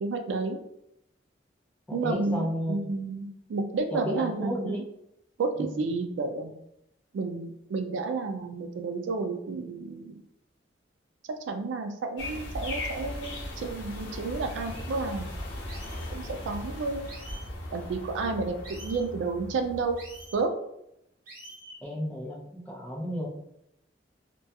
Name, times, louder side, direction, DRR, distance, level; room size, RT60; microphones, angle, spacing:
voice 1, 0.0-0.6 1.9-4.8 5.4-6.5 7.1-10.2 11.5-15.3 16.1-17.0 17.7-20.0 20.3-20.5, right 3 dB, 75° right, 6 dB, 0.3 m, -31 dB
voice 2, 1.9-2.7 3.9-4.8 5.6-5.8 21.8-23.3, equal, 10° left, -3 dB, 0.5 m, -33 dB
sound 1, 12.2-20.4, left 1 dB, 75° left, 0.6 m, -38 dB
sound 2, 14.4-14.8 15.7-16.1 17.1-17.5 18.6-19.0 20.0-20.4 21.3-21.8, right 1 dB, 50° right, 0.8 m, -47 dB
2.2 x 2.2 x 2.7 m, 0.79 s
head